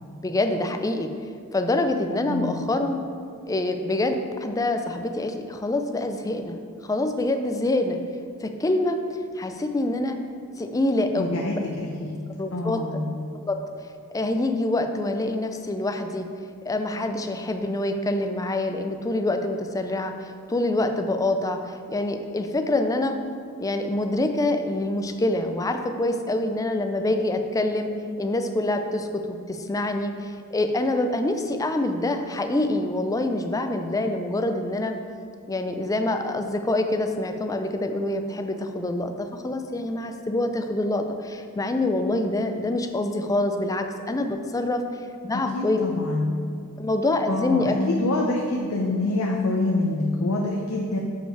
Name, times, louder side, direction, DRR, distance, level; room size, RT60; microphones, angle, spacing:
voice 1, 0.2-1.1 1.5-3.0 3.5-8.0 8.4-9.0 9.4-10.2 10.6-11.6 12.4-12.8 13.4-13.6 14.1-16.3 16.7-23.2 23.6-27.9 28.2-34.9 35.5-44.8 45.2-45.8 46.8-47.7, left 2 dB, 15° left, 6 dB, 0.4 m, -26 dB
voice 2, 2.3-2.7 11.2-13.1 45.3-46.3 47.3-51.0, left 2 dB, 75° left, 0 dB, 0.6 m, -26 dB
6.8 x 5.2 x 4.5 m, 2.2 s
head